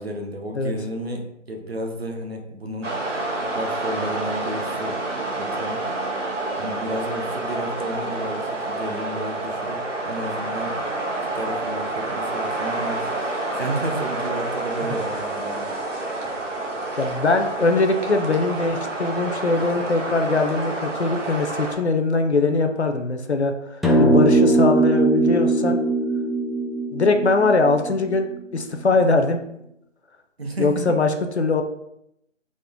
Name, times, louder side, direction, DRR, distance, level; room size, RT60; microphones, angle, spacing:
voice 1, 0.0-2.9 3.5-5.0 5.4-5.9 6.6-10.8 11.2-15.7 30.4-31.0, right 1 dB, 55° right, 2 dB, 0.6 m, -32 dB
sound 1, 2.8-21.7, right 2 dB, 75° right, 0.9 m, -28 dB
voice 2, 17.0-25.8 26.9-29.4 30.6-31.1 31.4-31.6, left 3 dB, 60° left, 6 dB, 0.5 m, -21 dB
sound 2, 23.8-28.4, right 2 dB, ahead, 0.3 m, -20 dB
3.6 x 2.1 x 3.5 m, 0.80 s
figure-of-eight pair, 175°, 37 cm